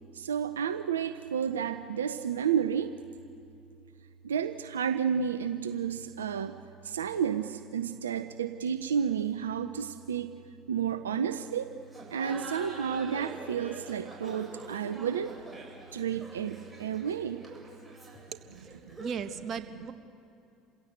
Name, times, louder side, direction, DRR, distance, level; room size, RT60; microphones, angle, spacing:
voice 1, 0.1-2.9 4.2-6.6 6.8-10.4 10.7-11.7 12.1-15.4 15.9-17.5, right 8 dB, 85° right, 10 dB, 0.7 m, -31 dB
Laughter, 11.9-19.3, right 2 dB, 10° right, 7.6 m, -45 dB
voice 2, 18.3-18.7 19.0-19.9, right 6 dB, 45° right, 9 dB, 1.6 m, -37 dB
28.5 x 16.5 x 8.1 m, 2.6 s
hypercardioid pair, 65°, 0 cm